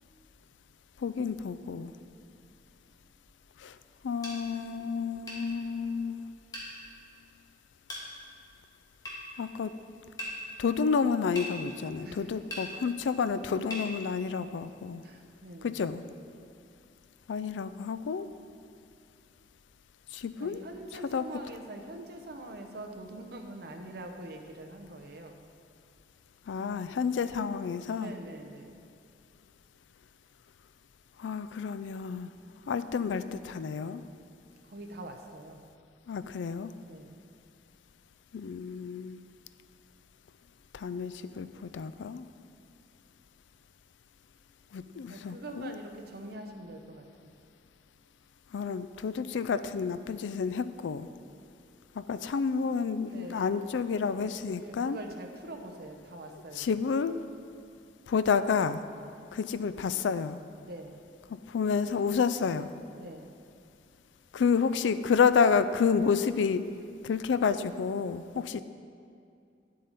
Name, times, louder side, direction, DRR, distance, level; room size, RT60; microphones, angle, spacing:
voice 1, 1.0-1.9 3.6-3.7 4.0-6.2 9.4-9.7 10.6-15.0 15.6-16.0 17.3-18.3 20.1-20.6 21.1-21.3 26.5-28.1 31.2-32.3 32.7-34.0 36.1-36.7 38.3-39.2 40.7-42.2 44.7-45.8 48.5-51.1 52.0-55.0 56.5-57.2 58.1-58.8 59.3-60.4 61.5-62.7 64.3-66.6 67.0-68.6, left 6 dB, 75° left, 13 dB, 0.4 m, -29 dB
sound 1, 4.2-4.4 5.3-5.4 6.5-6.7 7.9-8.1 9.0-9.2 10.2-10.3 11.3-11.5 12.5-12.7 13.7-13.9, left 1 dB, 20° left, 1.6 m, -38 dB
voice 2, 12.0-12.6 15.0-15.8 20.3-25.4 27.9-28.9 34.6-35.6 36.8-37.2 45.1-47.3 53.0-56.9 60.6-61.0 63.0-63.3, right 1 dB, 55° right, 3 dB, 0.8 m, -44 dB
10.0 x 7.6 x 4.1 m, 2.4 s
head